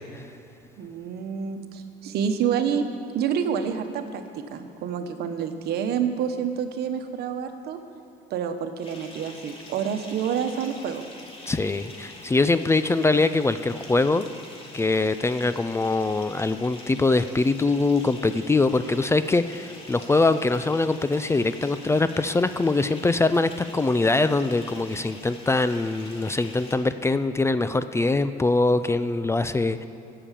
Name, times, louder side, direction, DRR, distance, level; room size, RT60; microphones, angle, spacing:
voice 1, 0.8-2.8 3.1-7.8 8.3-11.0, right 7 dB, 70° right, 7 dB, 1.2 m, -28 dB
Bathtub (filling or washing) / Fill (with liquid), 8.8-26.8, left 2 dB, 35° left, 2.7 m, -45 dB
voice 2, 11.5-14.3 14.7-29.9, left 3 dB, 15° left, 12 dB, 0.4 m, -23 dB
17.5 x 7.0 x 7.5 m, 2.8 s
cardioid pair, 110°, 17 cm